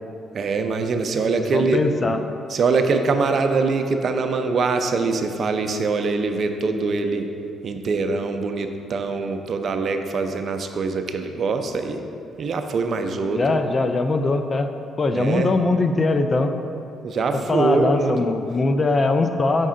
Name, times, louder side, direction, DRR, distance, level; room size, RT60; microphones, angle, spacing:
voice 1, 0.3-1.8 2.5-7.3 7.6-12.0 12.4-13.6 15.1-15.5 17.0-18.3, right 4 dB, 55° right, 6 dB, 0.5 m, -23 dB
voice 2, 1.5-2.2 13.4-14.7 15.0-16.5 17.5-19.7, left 3 dB, 35° left, 7 dB, 0.4 m, -21 dB
6.6 x 5.3 x 3.7 m, 2.6 s
cardioid pair, 90°, 0 cm